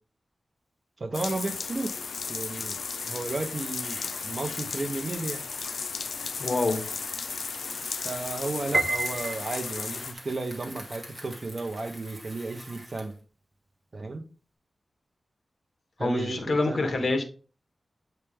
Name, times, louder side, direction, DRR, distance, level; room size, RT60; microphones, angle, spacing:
voice 1, 1.0-2.0 2.3-2.8 3.0-5.4 7.7-7.8 8.0-13.1 13.9-14.2 16.0-17.0, right 3 dB, 45° right, 0.9 m, -33 dB
sound 1, 1.1-10.1, left 5 dB, 80° left, 0.3 m, -35 dB
Bicycle, 2.7-13.2, equal, 10° right, 2.0 m, -47 dB
voice 2, 6.4-6.9 16.0-17.2, left 2 dB, 60° left, 1.2 m, -26 dB
Piano, 8.7-10.0, right 2 dB, 25° right, 0.3 m, -29 dB
8.2 x 3.4 x 3.5 m
wide cardioid pair, 100°, 0 cm